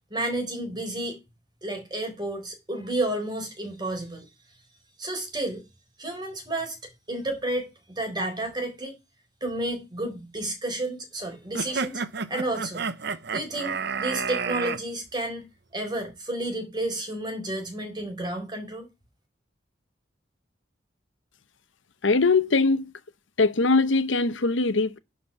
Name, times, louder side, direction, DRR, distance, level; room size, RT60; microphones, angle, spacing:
voice 1, 0.1-1.2 1.6-4.2 5.0-5.6 6.0-9.0 9.4-12.0 12.3-12.9 13.3-15.5 15.7-18.9, right 1 dB, 25° right, 4.3 m, -31 dB
sound 1, 11.5-14.8, right 5 dB, 60° right, 0.8 m, -30 dB
voice 2, 22.0-22.9 23.4-25.0, left 3 dB, 90° left, 0.9 m, -21 dB
11.0 x 5.2 x 5.8 m
head